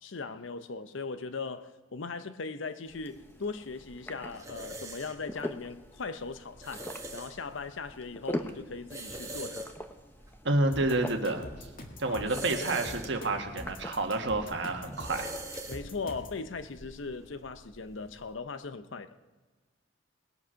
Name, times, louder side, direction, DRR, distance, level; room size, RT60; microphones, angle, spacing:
voice 1, 0.0-9.7 12.1-12.2 15.7-19.1, left 4 dB, 75° left, 0.7 m, -39 dB
sound 1, 2.6-15.5, left 1 dB, 10° left, 0.7 m, -44 dB
sound 2, 2.9-18.4, right 1 dB, 15° right, 1.3 m, -45 dB
voice 2, 10.4-11.7 12.0-15.4, right 2 dB, 65° right, 1.5 m, -29 dB
sound 3, 10.7-16.4, left 1 dB, 45° left, 1.6 m, -44 dB
20.5 x 7.7 x 5.7 m
head